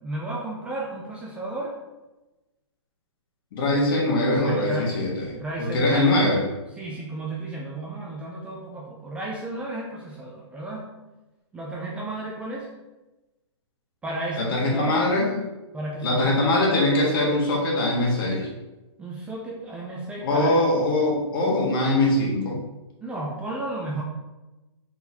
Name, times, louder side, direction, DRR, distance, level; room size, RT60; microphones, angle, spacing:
voice 1, 0.0-1.8 4.3-5.0 5.3-6.1 6.8-10.9 11.5-12.7 14.0-15.0 15.7-16.6 19.0-20.6 23.0-24.0, right 2 dB, 5° right, -3 dB, 0.4 m, -33 dB
voice 2, 3.5-6.4 14.4-15.4 16.0-18.5 20.2-22.6, left 1 dB, 50° left, -2 dB, 1.4 m, -22 dB
4.2 x 4.0 x 2.7 m, 1.1 s
hypercardioid pair, 150°, 16 cm